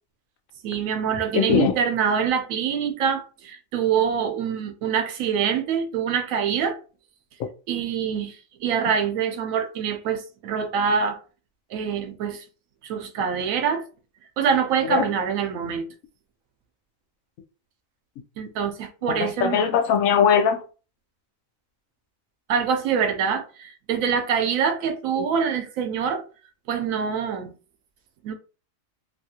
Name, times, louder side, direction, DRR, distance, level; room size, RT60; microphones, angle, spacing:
voice 1, 0.6-6.8 7.7-8.4 8.6-11.2 11.7-12.4 12.8-13.8 14.4-15.9 18.4-19.6 22.5-26.2 26.7-27.5 28.2-28.3, right 7 dB, 85° right, 1.0 m, -25 dB
voice 2, 1.3-1.7 14.9-15.1 19.1-20.6 25.2-25.3, left 8 dB, 85° left, 1.0 m, -20 dB
2.8 x 2.4 x 2.7 m
omnidirectional pair, 1.4 m